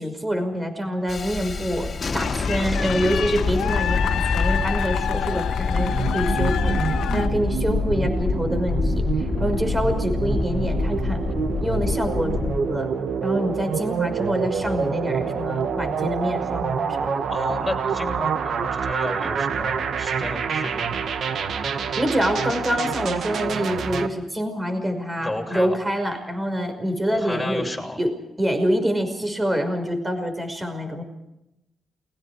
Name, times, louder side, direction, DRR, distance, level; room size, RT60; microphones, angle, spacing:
voice 1, 0.0-11.2 11.6-12.9 13.2-17.2 22.0-27.7 28.0-31.0, equal, 20° right, 7 dB, 5.5 m, -26 dB
Thunderstorm, 1.1-12.6, left 4 dB, 50° left, 2.4 m, -26 dB
sound 1, 2.1-7.3, left 9 dB, 85° left, 1.3 m, -29 dB
sound 2, 5.8-24.1, right 6 dB, 75° right, 1.5 m, -27 dB
voice 2, 17.3-21.0 25.2-25.7 27.1-28.0, left 1 dB, 10° left, 1 dB, 8.0 m, -32 dB
29.5 x 22.5 x 4.9 m, 0.89 s
supercardioid pair, 50°, 0 cm